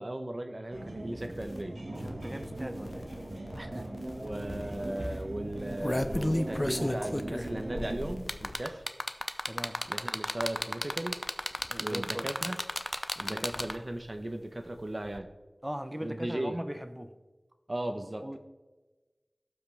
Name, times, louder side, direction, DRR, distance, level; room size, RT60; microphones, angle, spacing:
voice 1, 0.0-1.8 3.5-3.8 4.2-8.8 9.9-11.2 11.8-12.6 13.2-15.3 16.0-16.6 17.7-18.4, right 1 dB, 45° right, 0.9 m, -37 dB
sound 1, 0.7-8.2, right 1 dB, 75° right, 1.9 m, -39 dB
sound 2, 1.2-1.6 1.9-5.2 5.5-8.5, left 1 dB, 70° left, 1.5 m, -49 dB
voice 2, 2.0-3.1 9.5-9.8 11.7-12.3 13.2-13.7 15.6-17.1 18.2-18.4, equal, 15° right, 0.8 m, -39 dB
sound 3, 4.3-4.4 4.7-5.0 5.5-14.0 15.1-15.2, left 1 dB, 25° left, 0.7 m, -33 dB
17.5 x 5.9 x 3.5 m
wide cardioid pair, 45°, 0 cm